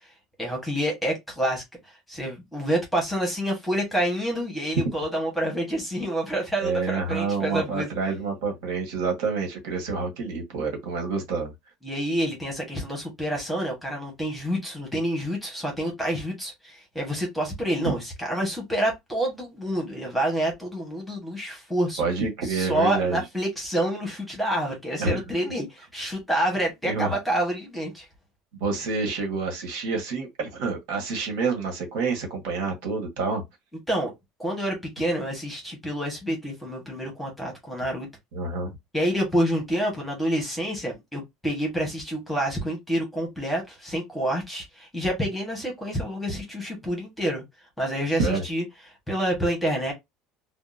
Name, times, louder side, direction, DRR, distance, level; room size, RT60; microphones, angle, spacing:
voice 1, 0.4-7.9 11.8-22.0 22.4-28.1 33.9-34.1 34.4-38.1 38.9-47.4 47.8-48.6 49.1-49.9, right 1 dB, ahead, 1.1 m, -28 dB
voice 2, 6.6-11.5 22.0-23.2 25.0-25.2 26.8-27.2 28.6-33.4 38.3-38.7 48.2-48.4, right 4 dB, 70° right, 1.3 m, -28 dB
3.6 x 2.1 x 2.5 m
cardioid pair, 180°, 0 cm